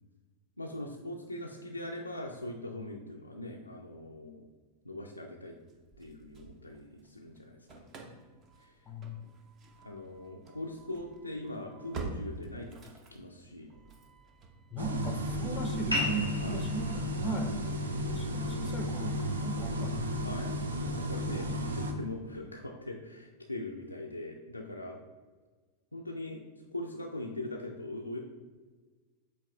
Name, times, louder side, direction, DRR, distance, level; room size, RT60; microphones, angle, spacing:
voice 1, 0.6-4.4 4.8-5.6 6.0-7.8 8.6-8.8 9.8-12.8 13.1-13.8 16.4-16.6 20.2-25.0 25.9-28.2, left 1 dB, 85° left, -1 dB, 0.4 m, -41 dB
Engine starting / Slam, 5.7-7.1 7.4-20.4, right 3 dB, 30° right, 0.8 m, -49 dB
voice 2, 8.9-9.2 14.7-17.6 18.0-20.3 21.2-21.6, right 1 dB, 20° left, 5 dB, 0.5 m, -38 dB
sound 1, 14.8-21.9, equal, 70° right, 0.5 m, -34 dB
sound 2, 15.9-20.9, left 1 dB, 90° right, 1.1 m, -39 dB
7.8 x 2.9 x 2.3 m, 1.4 s
figure-of-eight pair, 90°, 0 cm